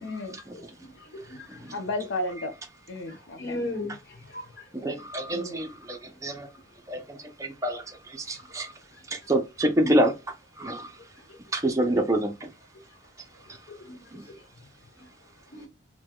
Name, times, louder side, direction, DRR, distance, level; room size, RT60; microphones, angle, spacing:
voice 1, 0.0-0.4 1.7-2.5 2.9-3.6 5.3-5.6, left 2 dB, 80° left, 0.6 m, -33 dB
voice 2, 0.5-1.5 3.4-3.9 4.3-4.4 13.8-14.0 15.5-15.7, left 1 dB, 55° left, 1.2 m, -35 dB
voice 3, 4.8-6.5 6.9-8.7 9.1-10.1 10.6-10.9 11.5-12.5 14.1-14.3, right 1 dB, 15° right, 0.5 m, -27 dB
4.5 x 2.2 x 2.3 m
head